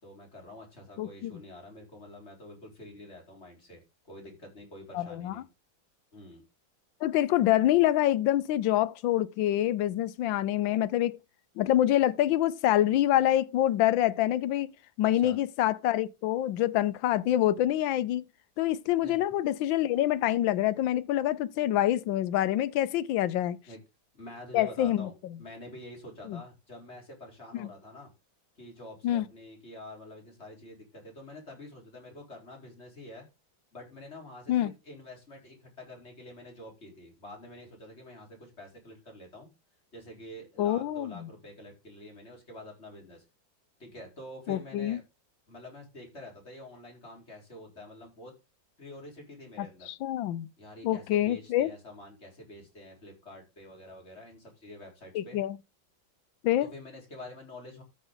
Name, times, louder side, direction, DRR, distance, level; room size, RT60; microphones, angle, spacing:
voice 1, 0.0-3.8 4.1-5.5 6.1-6.4 15.0-15.4 19.0-19.2 23.7-23.8 24.1-28.1 28.6-33.3 33.7-39.5 39.9-43.2 43.8-45.0 45.5-48.3 48.8-49.9 50.6-55.4 56.6-57.8, left 1 dB, 35° left, 4.6 m, -47 dB
voice 2, 1.0-1.3 4.9-5.4 7.0-11.2 11.6-14.7 15.0-18.2 18.6-23.6 24.5-25.1 26.3-26.4 27.5-27.7 29.0-29.3 34.5-34.7 40.6-41.3 44.5-45.0 49.6-50.5 50.8-51.7 55.1-55.6 56.4-56.7, left 13 dB, 80° left, 1.4 m, -26 dB
13.0 x 6.3 x 3.9 m
omnidirectional pair, 2.1 m